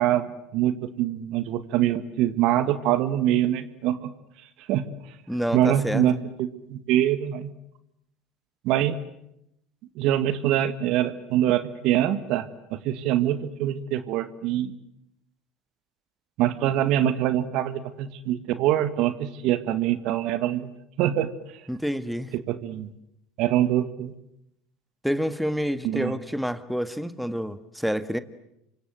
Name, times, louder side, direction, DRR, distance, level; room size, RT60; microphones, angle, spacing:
voice 1, 0.0-4.1 4.7-4.9 5.5-7.5 8.6-9.0 10.0-14.7 16.4-20.7 21.0-21.3 22.3-22.9 23.4-24.1 25.8-26.2, right 12 dB, 60° right, 1.8 m, -24 dB
voice 2, 5.3-6.0 21.7-22.3 25.0-28.2, equal, ahead, 1.7 m, -28 dB
29.0 x 25.0 x 7.9 m
hypercardioid pair, 75°, 0 cm